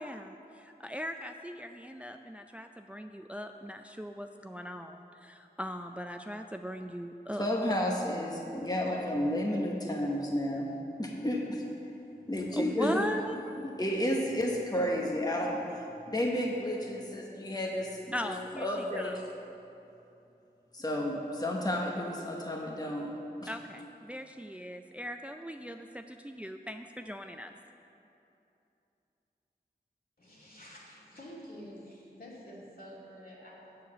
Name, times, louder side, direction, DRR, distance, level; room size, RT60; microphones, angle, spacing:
voice 1, 0.0-7.5 12.5-13.3 18.1-18.7 19.0-19.2 23.5-27.5, equal, 5° right, 6 dB, 0.4 m, -39 dB
voice 2, 7.3-10.7 11.0-11.6 12.3-13.1 13.6-19.2 20.7-23.5, left 1 dB, 25° left, -1 dB, 1.1 m, -32 dB
voice 3, 30.2-33.8, equal, 60° left, -6 dB, 2.6 m, -49 dB
8.0 x 6.8 x 7.5 m, 2.8 s
wide cardioid pair, 45°, 17 cm